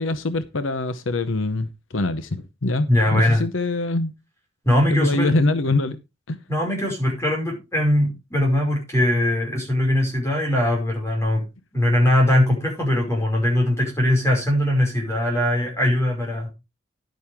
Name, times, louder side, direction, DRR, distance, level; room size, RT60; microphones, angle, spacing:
voice 1, 0.0-4.1 4.9-6.0 6.3-6.4, left 2 dB, 80° left, 11 dB, 0.9 m, -24 dB
voice 2, 2.9-3.4 4.6-5.3 6.5-11.5 11.7-16.5, left 1 dB, 15° left, 0 dB, 5.5 m, -21 dB
11.0 x 9.3 x 3.5 m, 0.25 s
head